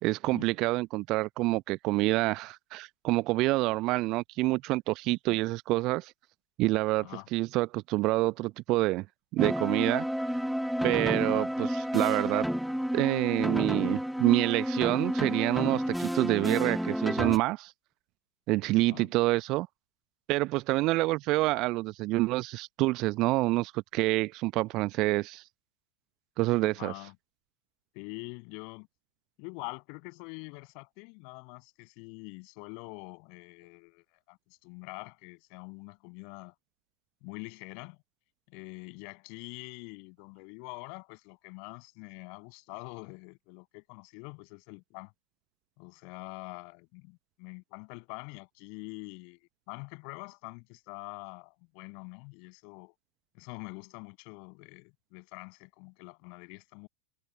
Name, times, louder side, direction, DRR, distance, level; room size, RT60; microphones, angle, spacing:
voice 1, 0.0-6.1 6.6-9.1 9.3-10.1 10.8-12.5 12.9-17.7 18.5-19.7 20.3-25.4 26.4-26.9, right 20 dB, 40° right, 1.0 m, -27 dB
sound 1, 9.4-17.4, equal, ahead, 2.0 m, -30 dB
voice 2, 26.6-27.1 27.9-28.9 29.4-36.5 37.2-38.0 38.5-45.1 45.8-49.4 49.7-52.9 53.3-56.9, left 39 dB, 45° left, 7.9 m, -45 dB
figure-of-eight pair, 90°, 0 cm